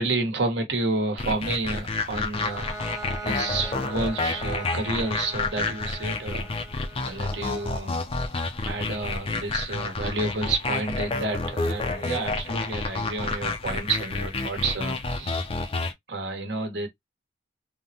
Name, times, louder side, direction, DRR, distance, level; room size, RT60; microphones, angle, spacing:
voice 1, 0.0-2.7 3.2-6.5 7.0-8.0 8.6-15.4 16.1-16.9, right 3 dB, 65° right, 1.0 m, -30 dB
sound 1, 1.2-15.9, left 3 dB, 30° left, 0.4 m, -29 dB
Bowed string instrument, 2.4-8.0, right 3 dB, 15° right, 0.5 m, -42 dB
3.4 x 2.1 x 2.6 m
head